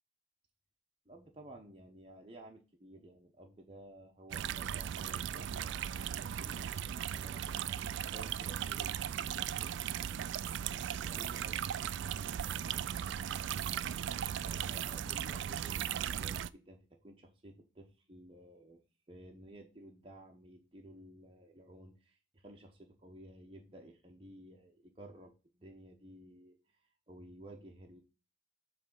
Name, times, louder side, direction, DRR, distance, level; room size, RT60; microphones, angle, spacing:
voice 1, 1.1-7.7 8.1-13.6 14.4-18.8 19.1-26.6 27.1-28.0, right 1 dB, 30° right, 1 dB, 0.9 m, -54 dB
sound 1, 4.3-16.5, right 9 dB, 70° right, 0.3 m, -37 dB
7.5 x 3.4 x 5.5 m, 0.32 s
head